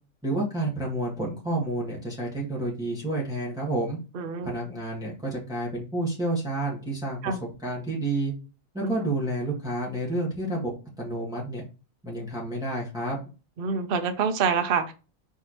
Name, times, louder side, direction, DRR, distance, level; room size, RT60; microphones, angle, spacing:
voice 1, 0.2-4.0 4.4-8.3 8.7-11.6 12.0-13.2, right 1 dB, 5° right, 1.5 m, -30 dB
voice 2, 4.1-4.6 7.2-7.4 8.8-8.9 13.6-14.9, right 5 dB, 55° right, 0.8 m, -26 dB
4.5 x 3.4 x 3.0 m
omnidirectional pair, 1.4 m